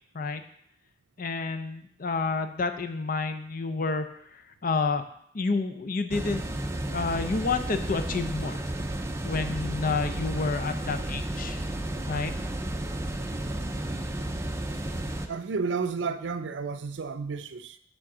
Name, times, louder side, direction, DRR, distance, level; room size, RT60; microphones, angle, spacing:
voice 1, 1.2-5.1 5.3-6.4 6.9-8.6 9.2-11.6 12.1-12.3, left 4 dB, 50° left, 0.5 m, -29 dB
sound 1, 6.1-15.3, right 1 dB, 15° right, 0.5 m, -32 dB
voice 2, 15.3-17.8, right 5 dB, 75° right, 0.5 m, -32 dB
7.5 x 3.7 x 6.0 m
head